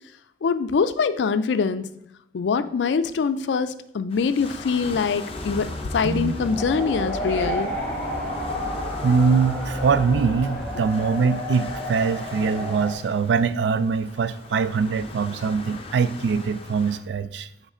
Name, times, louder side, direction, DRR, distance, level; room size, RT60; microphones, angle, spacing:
voice 1, 0.4-1.9 2.3-7.7, left 5 dB, 75° left, 12 dB, 0.4 m, -24 dB
sound 1, 4.1-17.0, left 3 dB, 35° left, 0.6 m, -41 dB
sound 2, 5.3-10.9, equal, 5° right, 1.0 m, -35 dB
sound 3, 6.4-12.9, left 1 dB, 10° left, 1.6 m, -31 dB
voice 2, 9.0-17.5, right 5 dB, 75° right, 14 dB, 0.3 m, -23 dB
6.5 x 3.2 x 4.9 m, 0.74 s
head